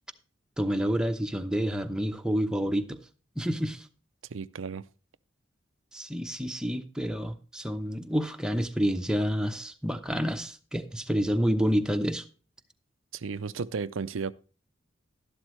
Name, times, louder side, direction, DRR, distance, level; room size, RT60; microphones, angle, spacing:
voice 1, 0.6-3.0 3.4-3.9 5.9-12.2, equal, 5° right, 0.9 m, -28 dB
voice 2, 4.3-4.8 13.1-14.3, right 5 dB, 90° right, 0.5 m, -34 dB
12.0 x 11.5 x 3.2 m
head